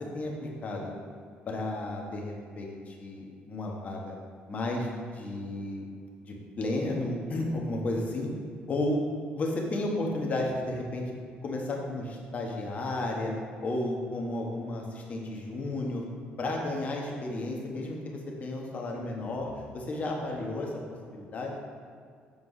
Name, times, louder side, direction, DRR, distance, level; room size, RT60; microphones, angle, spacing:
voice 1, 0.1-0.9 1.4-4.1 4.5-5.9 6.2-8.3 8.7-9.0 9.3-11.1 11.4-13.3 13.6-16.0 16.4-20.7 21.1-21.5, left 2 dB, 40° left, 0 dB, 1.4 m, -33 dB
8.2 x 4.4 x 5.6 m, 2.2 s
cardioid pair, 125°, 4 cm